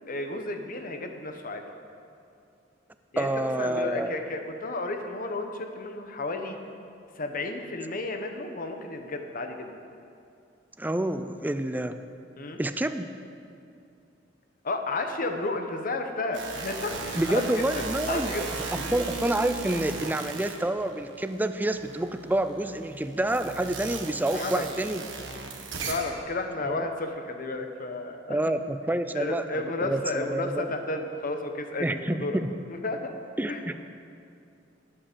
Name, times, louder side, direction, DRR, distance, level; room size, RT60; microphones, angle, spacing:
voice 1, 0.1-1.6 3.1-6.6 7.2-9.8 12.4-12.6 14.6-18.8 24.3-24.7 25.8-28.6 29.1-32.4 32.7-33.1 33.5-33.6, left 2 dB, 45° left, 5 dB, 1.0 m, -32 dB
voice 2, 3.2-4.2 10.8-12.0 12.6-13.1 17.1-18.3 18.7-25.0 26.7-26.9 28.3-30.7 31.8-32.5 33.4-33.8, right 1 dB, 10° right, 10 dB, 0.4 m, -28 dB
sound 1, 16.3-21.3 21.7-26.2, right 4 dB, 75° right, 1.5 m, -36 dB
11.5 x 8.6 x 6.8 m, 2.6 s
head